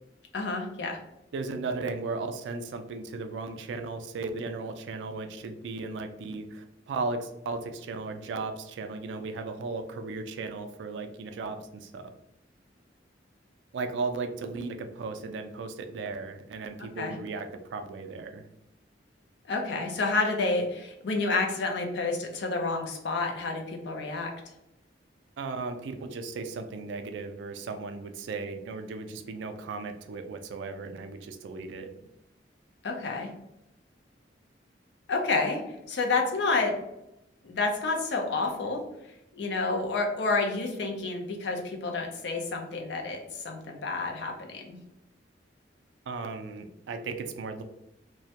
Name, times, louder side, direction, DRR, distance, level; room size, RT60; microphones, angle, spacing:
voice 1, 0.3-1.0 17.0-17.1 19.5-24.3 32.8-33.3 35.1-35.6 35.9-36.7 37.4-38.8 39.3-44.8, left 3 dB, 65° left, 2 dB, 0.5 m, -29 dB
voice 2, 1.3-12.1 13.7-18.4 25.4-31.9 46.1-47.6, right 3 dB, 75° right, 7 dB, 0.3 m, -36 dB
2.2 x 2.1 x 2.7 m, 0.86 s
head